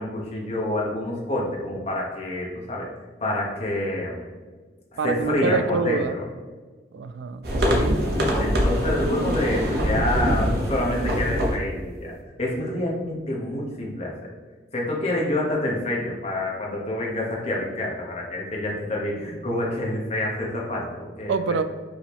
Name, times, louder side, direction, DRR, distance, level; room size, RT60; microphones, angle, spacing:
voice 1, 0.0-2.9 3.2-4.3 4.9-6.2 8.4-12.1 12.4-14.3 14.7-21.6, left 1 dB, 35° left, -3 dB, 0.9 m, -27 dB
voice 2, 5.0-6.2 6.9-8.1 21.3-21.6, right 4 dB, 80° right, 11 dB, 0.3 m, -26 dB
sound 1, 7.4-11.6, equal, 55° right, 0.7 m, -23 dB
4.8 x 2.8 x 3.4 m, 1.4 s
head